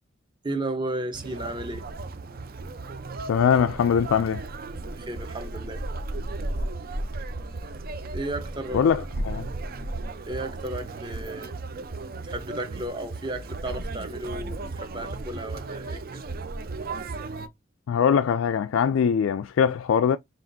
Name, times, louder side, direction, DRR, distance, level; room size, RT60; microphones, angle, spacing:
voice 1, 0.4-1.8 4.9-5.8 8.1-8.9 10.2-11.5 12.2-16.2, right 1 dB, 25° right, 0.9 m, -34 dB
Conversation, 1.1-17.5, right 2 dB, 50° right, 0.6 m, -35 dB
voice 2, 3.3-4.4 8.7-9.5 17.9-20.2, left 7 dB, 90° left, 0.3 m, -22 dB
5.8 x 2.5 x 2.6 m
head